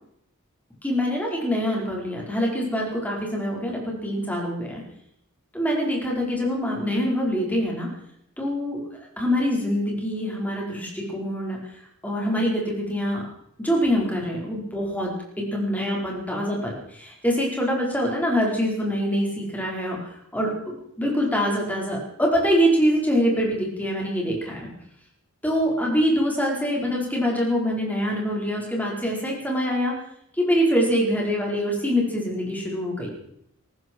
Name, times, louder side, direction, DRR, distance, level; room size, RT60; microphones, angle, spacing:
voice 1, 0.8-4.8 5.5-7.9 8.4-13.3 13.6-15.1 15.4-24.7 25.4-30.0 30.3-33.1, equal, 10° left, -2 dB, 4.9 m, -25 dB
19.0 x 15.0 x 4.7 m, 0.74 s
head